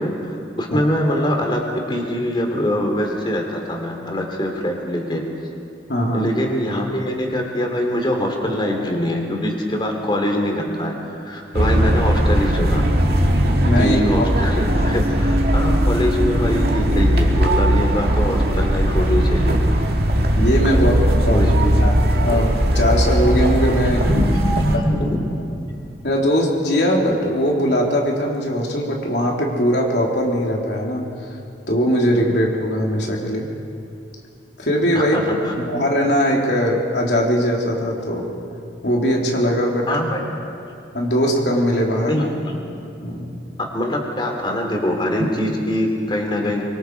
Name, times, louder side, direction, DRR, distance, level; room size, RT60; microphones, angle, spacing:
voice 1, 0.0-1.6 1.9-5.2 6.1-12.9 13.8-19.6 20.7-20.9 21.3-21.7 24.0-25.2 34.9-35.5 39.9-40.3 42.1-42.6 43.7-46.8, equal, 25° left, 2 dB, 3.1 m, -23 dB
voice 2, 5.9-6.3 13.6-14.3 20.3-20.9 21.3-24.1 26.0-31.4 31.7-33.5 34.6-35.2 35.5-38.3 38.8-39.9 40.9-42.3 43.0-43.3, equal, 65° left, -1 dB, 3.4 m, -20 dB
sound 1, 11.5-24.8, equal, 60° right, 2.1 m, -18 dB
24.5 x 24.0 x 4.7 m, 2.6 s
head